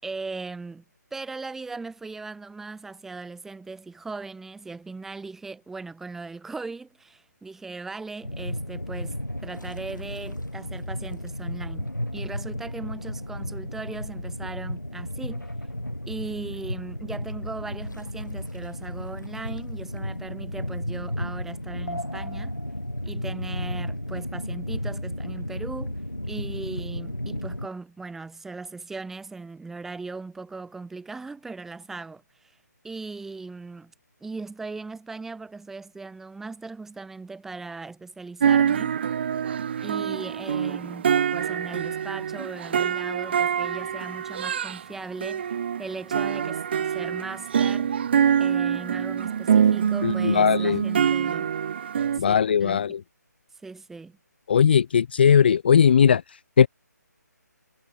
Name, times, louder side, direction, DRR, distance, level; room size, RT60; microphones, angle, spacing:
voice 1, 0.0-0.8 1.1-15.5 16.1-22.6 23.0-26.0 26.3-32.5 32.8-33.9 34.2-39.0 39.8-45.5 45.8-48.0 48.4-51.5 52.1-52.8 53.6-54.2, right 3 dB, 5° right, 7.1 m, -38 dB
sound 1, 8.2-27.7, left 1 dB, 85° left, 4.4 m, -33 dB
sound 2, 38.4-44.8 45.2-52.2, right 8 dB, 35° right, 3.5 m, -25 dB
voice 2, 50.0-50.8 52.2-53.0 54.5-56.7, left 7 dB, 35° left, 0.6 m, -19 dB
figure-of-eight pair, 145°, 10 cm